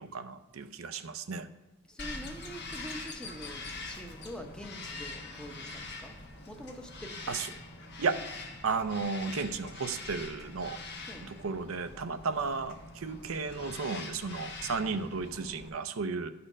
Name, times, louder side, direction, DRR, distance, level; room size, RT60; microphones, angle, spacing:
voice 1, 0.0-1.5 7.3-7.4 8.0-8.2 8.6-10.8 11.3-16.3, right 4 dB, 85° right, 11 dB, 0.6 m, -34 dB
voice 2, 1.9-6.2 6.5-7.6 11.1-11.3, equal, 5° left, 4 dB, 0.8 m, -45 dB
Bird vocalization bird call bird song, 2.0-15.7, left 3 dB, 55° left, 1.1 m, -44 dB
13.0 x 4.3 x 5.0 m, 1.1 s
head